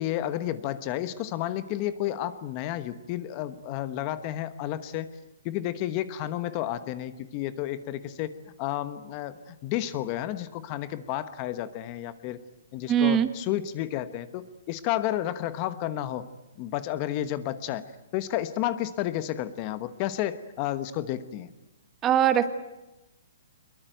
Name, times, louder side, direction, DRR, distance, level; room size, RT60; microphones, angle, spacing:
voice 1, 0.0-5.1 5.4-12.4 12.7-16.3 16.6-21.5, left 12 dB, 30° left, 14 dB, 1.1 m, -31 dB
voice 2, 12.9-13.3 22.0-22.5, right 10 dB, 15° right, 12 dB, 1.2 m, -21 dB
23.0 x 22.0 x 9.2 m, 1.0 s
hypercardioid pair, 160°, 0 cm